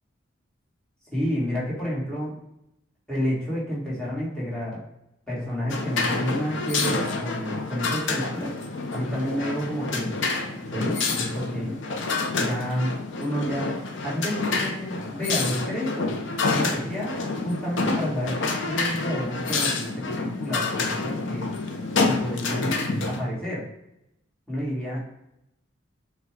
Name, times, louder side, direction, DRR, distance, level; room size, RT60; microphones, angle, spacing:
voice 1, 1.1-2.3 3.1-4.8 5.3-8.5 8.9-10.1 10.6-11.8 12.4-12.9 13.2-16.1 16.5-17.2 17.4-21.5 22.0-22.8 23.0-23.6 24.5-25.0, equal, 5° left, -8 dB, 1.6 m, -30 dB
sound 1, 5.7-23.2, left 3 dB, 65° left, 0.6 m, -28 dB
6.2 x 2.3 x 3.4 m, 0.84 s
head